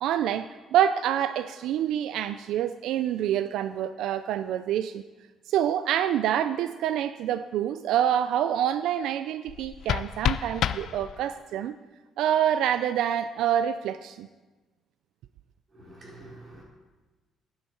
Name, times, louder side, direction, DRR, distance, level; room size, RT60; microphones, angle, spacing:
voice 1, 0.0-5.0 5.5-11.8 12.2-14.3, right 10 dB, 85° right, 12 dB, 0.3 m, -26 dB
sound 1, 9.4-11.5, left 10 dB, 60° left, 0.4 m, -30 dB
voice 2, 15.7-16.6, right 1 dB, 35° right, -4 dB, 4.0 m, -47 dB
12.5 x 9.6 x 4.5 m, 1.3 s
cardioid pair, 155°, 0 cm